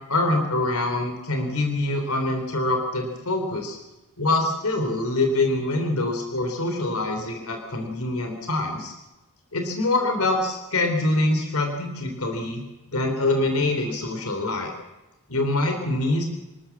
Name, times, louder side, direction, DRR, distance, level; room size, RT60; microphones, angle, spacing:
voice 1, 0.1-3.8 4.2-8.9 9.5-12.6 12.9-14.7 15.3-16.3, left 2 dB, 75° left, 4 dB, 3.5 m, -24 dB
27.0 x 13.0 x 7.3 m, 1.0 s
head